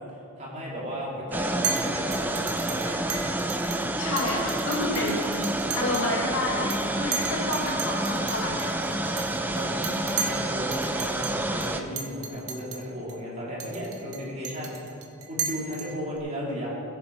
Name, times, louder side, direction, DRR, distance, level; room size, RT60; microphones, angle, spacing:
voice 1, 0.4-2.8 7.1-7.3 8.7-9.7 10.2-14.9 15.3-16.7, equal, 30° right, -5 dB, 3.4 m, -35 dB
sound 1, 1.3-11.8, right 1 dB, 10° right, 0.5 m, -29 dB
Chink clink, 1.6-1.8 2.1-3.8 4.2-6.1 6.4-6.8 7.1-10.4 10.7-11.3 11.6-11.7 12.0-12.8 13.1-13.2 13.6-16.2, right 6 dB, 75° right, 1.6 m, -33 dB
voice 2, 3.8-5.4 5.8-8.8 9.8-10.0, left 1 dB, 70° left, -2 dB, 2.5 m, -30 dB
17.5 x 8.4 x 5.5 m, 2.5 s
head